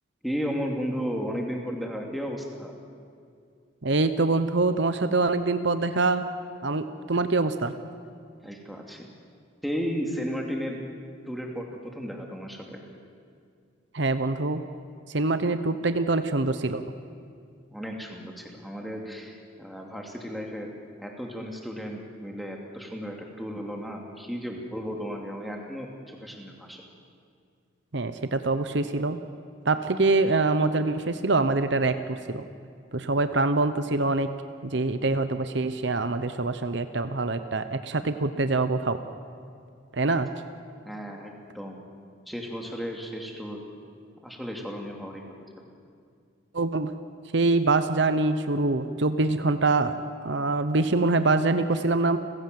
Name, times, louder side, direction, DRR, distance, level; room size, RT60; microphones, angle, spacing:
voice 1, 0.2-2.7 8.4-9.1 9.6-10.8 11.2-12.8 17.7-20.7 21.0-26.8 40.8-41.8 42.3-43.6 44.2-45.2, equal, ahead, 0 dB, 2.6 m, -34 dB
voice 2, 3.8-6.3 6.6-7.7 13.9-14.6 15.1-16.8 27.9-29.2 29.6-32.4 32.9-34.3 34.6-39.0 39.9-40.3 46.5-46.9 47.3-50.0 50.2-52.2, right 3 dB, 60° right, 10 dB, 0.9 m, -24 dB
30.0 x 16.5 x 7.8 m, 2.3 s
head